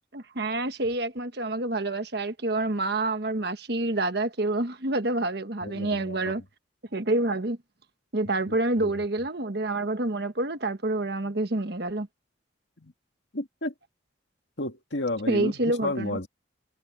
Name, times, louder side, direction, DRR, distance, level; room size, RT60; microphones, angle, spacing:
voice 1, 0.1-6.4 6.9-7.6 8.1-12.1 15.3-16.2, right 2 dB, 55° right, 1.3 m, -27 dB
voice 2, 5.6-6.3 8.5-8.6 8.8-8.9 12.8-12.9 13.3-13.7 14.6-16.3, left 2 dB, 65° left, 2.2 m, -32 dB
head